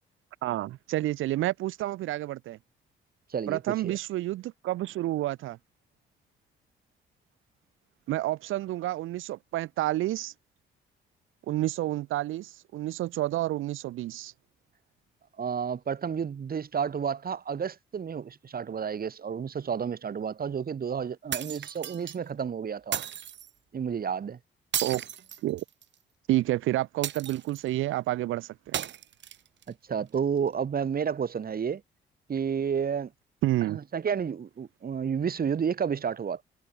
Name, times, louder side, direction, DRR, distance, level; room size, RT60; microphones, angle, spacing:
voice 1, 0.4-2.6 3.5-5.6 8.1-10.3 11.5-14.3 24.8-25.0 25.4-25.6 26.3-28.8 33.4-33.8, right 15 dB, 90° right, 5.7 m, -29 dB
voice 2, 3.3-4.0 15.4-23.0 23.7-24.4 29.7-31.8 32.3-33.1 33.7-36.4, right 7 dB, 50° right, 7.2 m, -31 dB
sound 1, 21.3-22.2 22.9-23.5 24.7-25.9 27.0-27.7 28.7-29.7, right 10 dB, 65° right, 6.0 m, -34 dB
cardioid pair, 90°, 20 cm